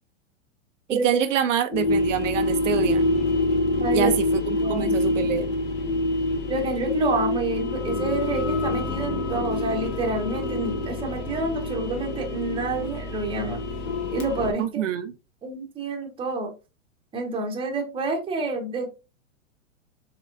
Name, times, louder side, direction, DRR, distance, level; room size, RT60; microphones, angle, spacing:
voice 1, 0.9-3.1 3.9-5.5 14.6-15.1, right 9 dB, 70° right, 0.6 m, -26 dB
sound 1, 1.7-14.5, left 2 dB, 45° left, 1.1 m, -26 dB
voice 2, 3.8-4.1 4.6-4.9 6.5-13.6 14.1-14.8 15.4-16.5 17.1-18.9, right 3 dB, 15° right, 0.9 m, -28 dB
Brass instrument, 4.9-14.3, left 3 dB, 30° left, 1.2 m, -43 dB
4.1 x 3.8 x 2.5 m
hypercardioid pair, 125°, 38 cm